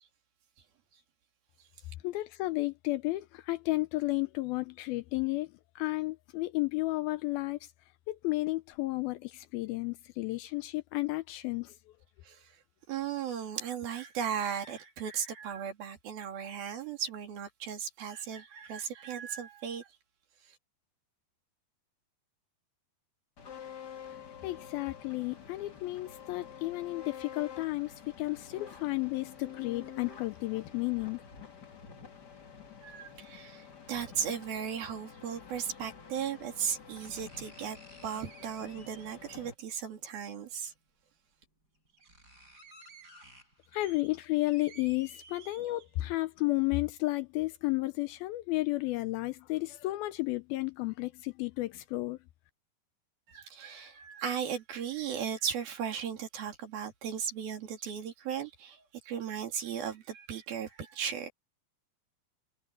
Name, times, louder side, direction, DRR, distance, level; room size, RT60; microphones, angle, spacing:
voice 1, 2.0-7.7 8.1-11.8 24.4-31.2 43.7-52.2, left 20 dB, 80° left, 2.3 m, -32 dB
voice 2, 12.9-19.9 32.8-40.7 53.3-61.3, right 8 dB, 65° right, 4.5 m, -36 dB
sound 1, 23.4-39.5, left 7 dB, 35° left, 1.9 m, -49 dB
sound 2, 36.1-36.2 37.0-39.3 40.7-40.8 41.4-41.5 41.7-46.2 46.6-46.7, right 1 dB, 20° right, 8.5 m, -55 dB
omnidirectional pair, 4.7 m